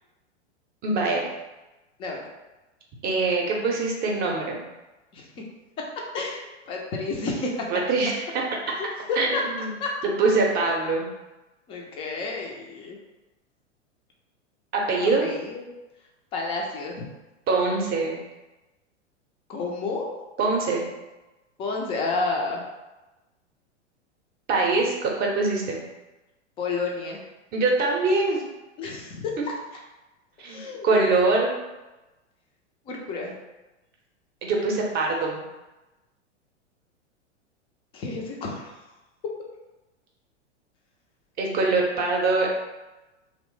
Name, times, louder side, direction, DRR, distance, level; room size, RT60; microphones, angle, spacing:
voice 1, 0.8-1.2 3.0-4.6 7.7-8.2 9.2-9.3 9.6-9.7 10.2-11.1 14.7-15.3 17.5-18.2 20.4-20.8 24.5-25.8 27.5-28.4 30.4-31.6 34.4-35.4 41.4-42.5, right 3 dB, 25° right, -1 dB, 0.6 m, -23 dB
voice 2, 5.1-5.4 6.1-7.7 8.8-9.4 9.8-9.9 11.7-13.0 15.0-15.6 16.3-17.1 19.5-20.1 21.6-22.6 26.6-27.2 28.8-29.4 30.4-30.9 32.9-33.3 37.9-38.8, left 3 dB, 15° left, 0 dB, 0.3 m, -30 dB
2.9 x 2.0 x 3.1 m, 1.1 s
hypercardioid pair, 105°, 36 cm